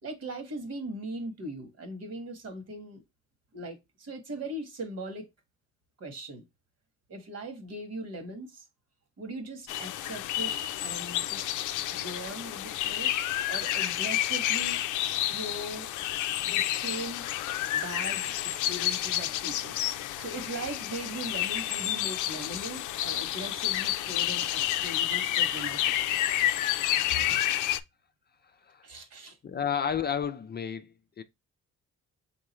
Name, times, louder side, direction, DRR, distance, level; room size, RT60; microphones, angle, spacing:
voice 1, 0.0-3.0 3.5-5.3 6.0-6.4 7.1-8.6 9.2-11.5 11.9-13.1 13.5-14.8 15.2-15.9 16.4-17.3 17.7-19.8 20.2-26.1 27.1-27.4 28.8-29.4, right 1 dB, 55° right, 1.7 m, -40 dB
sound 1, 9.7-27.8, left 13 dB, 80° left, 0.5 m, -30 dB
voice 2, 28.4-28.9 29.4-31.2, left 7 dB, 35° left, 0.5 m, -32 dB
3.8 x 3.7 x 3.1 m
cardioid pair, 90°, 30 cm